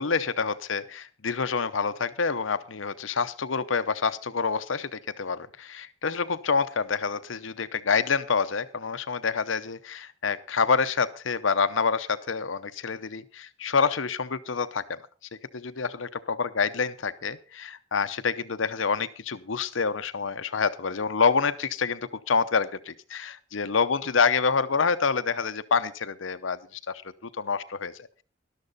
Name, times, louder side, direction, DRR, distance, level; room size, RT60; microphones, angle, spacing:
voice 1, 0.0-15.0 15.5-26.6 26.9-27.9, left 5 dB, 80° left, 13 dB, 0.8 m, -27 dB
13.5 x 12.0 x 4.1 m, 0.37 s
head